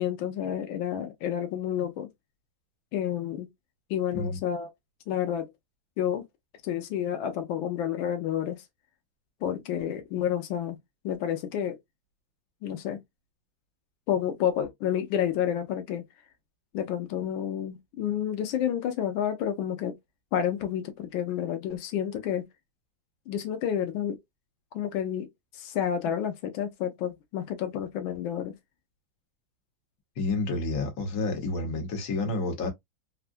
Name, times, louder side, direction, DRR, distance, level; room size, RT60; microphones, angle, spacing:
voice 1, 0.0-2.1 2.9-3.5 3.9-4.7 5.1-5.5 6.0-6.2 6.6-8.6 9.4-10.8 11.0-11.8 12.6-13.0 14.1-16.0 16.7-20.0 20.3-22.4 23.3-24.2 24.7-28.5, left 9 dB, 85° left, 1.4 m, -30 dB
voice 2, 30.2-32.7, left 3 dB, 50° left, 1.3 m, -29 dB
3.6 x 2.1 x 2.5 m
omnidirectional pair, 2.2 m